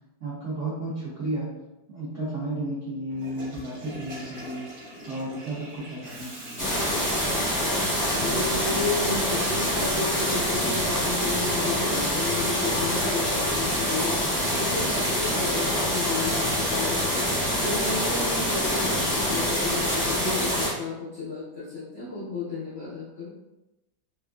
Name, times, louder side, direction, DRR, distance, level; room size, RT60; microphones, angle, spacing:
voice 1, 0.2-1.5 1.9-4.6 5.1-6.6, right 1 dB, 85° right, -8 dB, 0.6 m, -33 dB
Water tap faucet / Toilet flush, 3.1-11.1, equal, 60° right, 1.5 m, -41 dB
sound 1, 6.6-20.7, equal, 10° left, 0.5 m, -25 dB
voice 2, 8.2-14.2 14.6-17.3 17.6-23.3, left 3 dB, 75° left, -9 dB, 0.6 m, -32 dB
3.4 x 2.4 x 2.2 m, 1.0 s
omnidirectional pair, 2.2 m